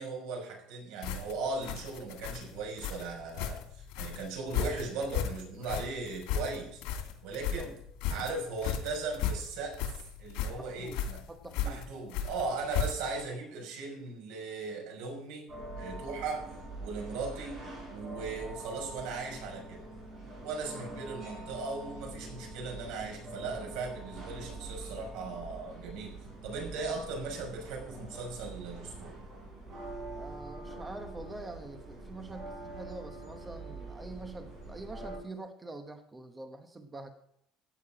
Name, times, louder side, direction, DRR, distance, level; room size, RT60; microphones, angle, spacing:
voice 1, 0.0-6.8 7.2-7.7 8.1-9.8 10.2-11.2 11.6-15.5 15.8-16.4 16.8-17.6 17.9-19.8 20.4-26.2 26.4-29.1, right 3 dB, 80° right, 2 dB, 5.8 m, -38 dB
sound 1, 1.0-13.2, left 7 dB, 85° left, 2.8 m, -35 dB
voice 2, 10.6-11.0 11.3-11.8 20.8-20.9 26.8-27.0 30.1-37.1, right 2 dB, 10° right, 6 dB, 0.9 m, -45 dB
sound 2, 15.5-35.2, right 2 dB, 35° right, 6.3 m, -44 dB
15.5 x 9.3 x 5.0 m, 0.73 s
cardioid pair, 180°, 0 cm